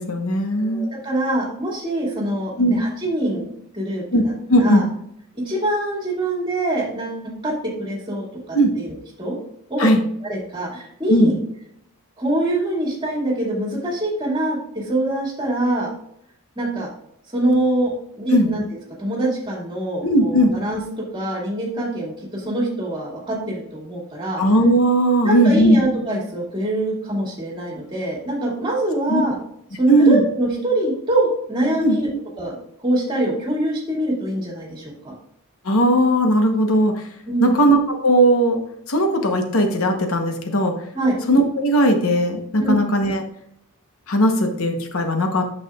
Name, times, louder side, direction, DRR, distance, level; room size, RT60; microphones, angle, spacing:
voice 1, 0.0-0.9 2.6-2.9 4.1-4.2 4.5-4.9 8.5-8.7 9.8-10.0 11.1-11.3 18.3-18.5 20.0-20.5 24.4-25.8 29.1-29.2 29.9-30.2 31.8-32.0 35.6-37.1 37.4-38.6 38.9-40.7 41.3-43.2 44.1-45.4, right 1 dB, 70° left, 5 dB, 1.0 m, -17 dB
voice 2, 0.6-4.8 5.3-9.4 9.7-9.9 10.2-11.4 12.2-15.9 16.6-16.9 17.3-18.6 19.0-20.8 21.1-24.4 25.2-29.3 29.8-32.1 32.4-32.6 32.8-35.1 37.3-37.5 40.9-41.2 42.6-42.8, right 1 dB, 20° right, -3 dB, 2.2 m, -24 dB
8.7 x 6.6 x 2.4 m, 0.73 s
head